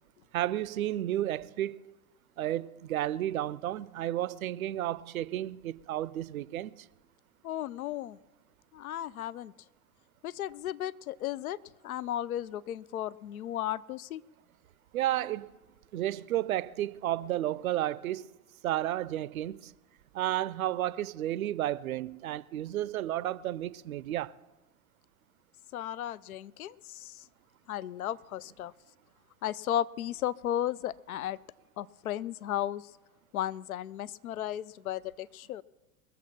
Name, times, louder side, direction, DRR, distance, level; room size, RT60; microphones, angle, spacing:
voice 1, 0.3-1.8 2.4-6.8 14.9-15.6 15.9-18.2 18.6-19.7 20.1-24.3, right 13 dB, 65° right, 0.6 m, -32 dB
voice 2, 7.4-8.2 8.7-9.5 10.2-11.6 11.8-14.2 25.7-27.3 27.7-28.7 29.4-31.4 31.8-32.9 33.3-35.6, left 12 dB, 70° left, 0.5 m, -35 dB
21.5 x 7.3 x 5.9 m
figure-of-eight pair, 90°, 45 cm